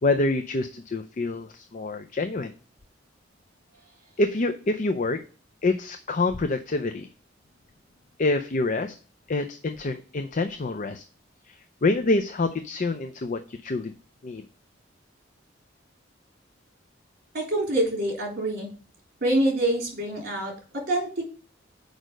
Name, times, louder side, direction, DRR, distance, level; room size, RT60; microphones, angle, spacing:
voice 1, 0.0-2.5 4.2-5.2 5.6-7.1 8.2-9.0 9.3-11.0 11.5-11.6 11.8-13.9 14.2-14.4, left 2 dB, 40° left, 7 dB, 0.5 m, -26 dB
voice 2, 17.3-18.7 19.2-21.2, right 1 dB, 55° right, -1 dB, 3.4 m, -26 dB
6.4 x 5.2 x 5.1 m, 0.40 s
head